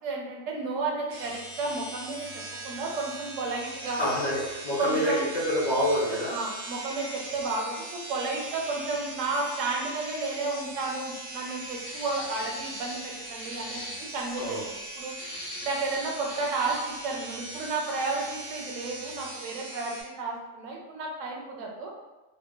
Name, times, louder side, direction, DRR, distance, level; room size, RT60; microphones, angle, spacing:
voice 1, 0.0-4.0 4.8-5.3 6.3-15.1 15.6-16.8 17.0-21.9, right 3 dB, 80° right, -1 dB, 0.9 m, -32 dB
sound 1, 1.1-20.0, right 2 dB, 50° right, 0.5 m, -40 dB
voice 2, 4.0-6.4 14.4-14.6, equal, 50° left, -8 dB, 0.6 m, -27 dB
sound 2, 11.8-13.1 13.4-14.0 15.1-17.0, left 1 dB, 85° left, 1.0 m, -41 dB
2.7 x 2.1 x 2.2 m, 1.1 s
omnidirectional pair, 1.3 m